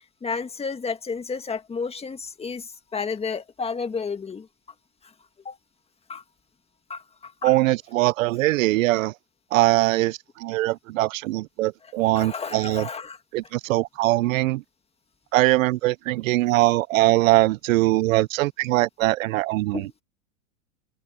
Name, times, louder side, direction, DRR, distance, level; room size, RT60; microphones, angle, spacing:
voice 1, 0.2-4.5 5.0-5.1 5.5-5.6 6.1-6.2 6.9-7.5 11.8-13.2 19.7-19.9, left 5 dB, 15° left, 2.0 m, -32 dB
voice 2, 7.4-9.1 9.5-12.9 13.3-14.6 15.3-19.8, right 18 dB, 80° right, 0.6 m, -22 dB
supercardioid pair, 130°, 39 cm